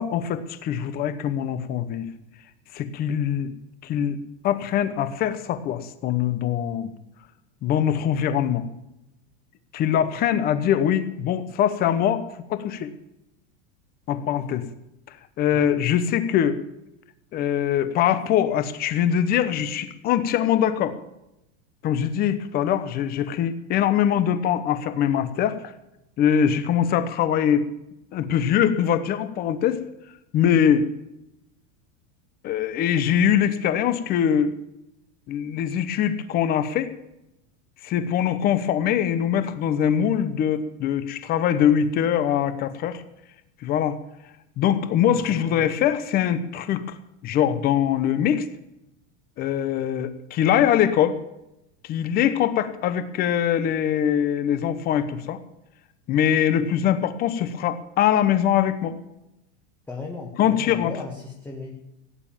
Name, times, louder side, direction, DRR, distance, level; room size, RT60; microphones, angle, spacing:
voice 1, 0.0-2.1 2.7-3.5 3.8-6.9 7.6-8.7 9.7-12.2 12.5-12.9 14.1-14.7 15.4-16.6 17.3-21.0 21.8-25.7 26.2-27.7 28.1-29.8 30.3-30.9 32.4-34.6 35.3-36.9 37.8-43.0 43.6-44.0 44.6-46.8 47.2-48.5 49.4-51.2 51.8-55.4 56.1-58.9 60.4-60.9, left 9 dB, 25° left, 12 dB, 1.0 m, -22 dB
voice 2, 45.1-45.7 59.9-61.7, left 3 dB, 5° left, -1 dB, 1.3 m, -37 dB
17.0 x 9.6 x 7.3 m, 0.87 s
supercardioid pair, 170°, 37 cm